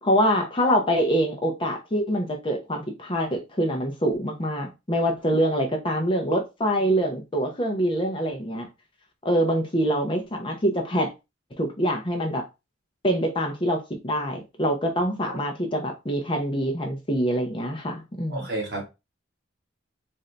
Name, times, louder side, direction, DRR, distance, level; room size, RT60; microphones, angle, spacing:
voice 1, 0.0-8.7 9.2-11.1 11.6-12.4 13.0-18.5, equal, 25° left, 0.7 m, -25 dB
voice 2, 18.3-18.8, right 2 dB, 55° right, 1.3 m, -31 dB
3.8 x 2.7 x 3.3 m
head